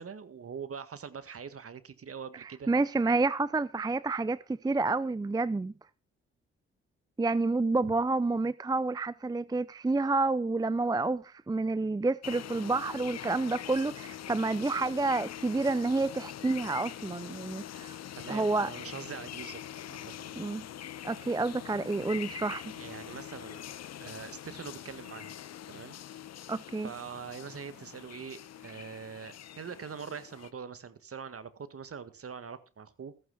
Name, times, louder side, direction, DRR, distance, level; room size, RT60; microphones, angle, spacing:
voice 1, 0.0-2.7 17.8-19.6 19.9-20.4 22.8-23.6 24.0-25.4 25.7-26.0 26.8-33.1, right 6 dB, 50° right, 1.7 m, -43 dB
voice 2, 2.4-5.7 7.2-18.0 18.3-18.7 20.4-20.7 21.0-22.7 26.5-26.9, right 3 dB, 15° right, 0.5 m, -29 dB
sound 1, 12.2-30.5, left 11 dB, 55° left, 0.8 m, -44 dB
15.5 x 14.5 x 2.3 m
hypercardioid pair, 45°, 31 cm